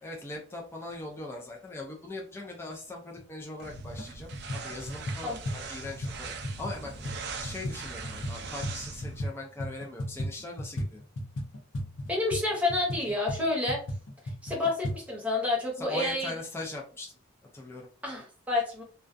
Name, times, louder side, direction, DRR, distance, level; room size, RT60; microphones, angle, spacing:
voice 1, 0.0-11.0 15.8-17.1 17.5-17.9, left 2 dB, 10° left, -1 dB, 0.4 m, -40 dB
sound 1, 3.2-3.3 3.7-4.1 4.3-9.3 9.6-15.0, equal, 75° left, 0.6 m, -36 dB
sound 2, 3.6-9.2, right 4 dB, 55° right, 0.4 m, -41 dB
voice 2, 12.1-13.8 14.4-16.3 18.0-18.8, left 2 dB, 5° right, -2 dB, 0.8 m, -29 dB
2.3 x 2.2 x 2.5 m, 0.39 s
head